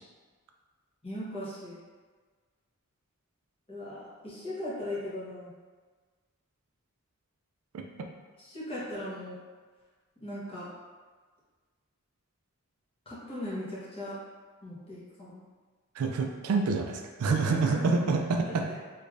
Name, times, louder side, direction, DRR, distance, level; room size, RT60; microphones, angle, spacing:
voice 1, 1.0-1.8 3.7-5.5 8.4-9.4 10.2-10.7 13.0-14.2 14.6-15.4 17.2-18.0 18.4-18.5, left 1 dB, 25° left, -9 dB, 1.1 m, -38 dB
voice 2, 16.0-18.8, right 4 dB, 80° right, 3 dB, 0.4 m, -27 dB
3.3 x 3.2 x 2.5 m, 1.4 s
head